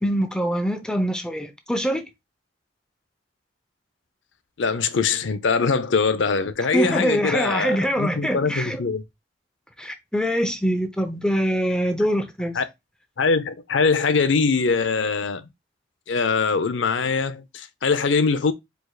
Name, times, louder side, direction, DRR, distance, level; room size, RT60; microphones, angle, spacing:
voice 1, 0.0-2.0 6.7-8.8 9.8-12.6, equal, 5° left, 0.8 m, -24 dB
voice 2, 4.6-9.0 12.5-12.6 13.2-15.5 16.1-18.5, left 4 dB, 75° left, 0.6 m, -22 dB
4.7 x 4.6 x 2.3 m
head